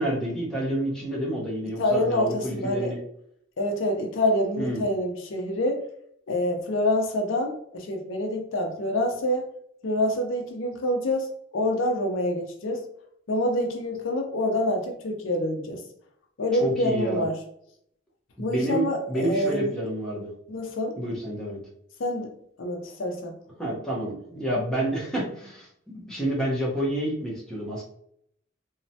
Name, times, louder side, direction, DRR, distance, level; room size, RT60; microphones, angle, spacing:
voice 1, 0.0-3.0 4.6-4.8 16.6-17.3 18.4-20.3 21.0-21.6 23.6-27.8, right 1 dB, 5° left, -5 dB, 0.8 m, -29 dB
voice 2, 1.8-2.9 3.6-5.8 6.3-9.5 9.8-12.9 13.3-15.8 16.4-17.4 18.4-19.7 20.5-21.0 22.0-22.3 22.6-23.4, left 1 dB, 75° left, 3 dB, 0.5 m, -26 dB
3.0 x 2.1 x 2.7 m, 0.68 s
head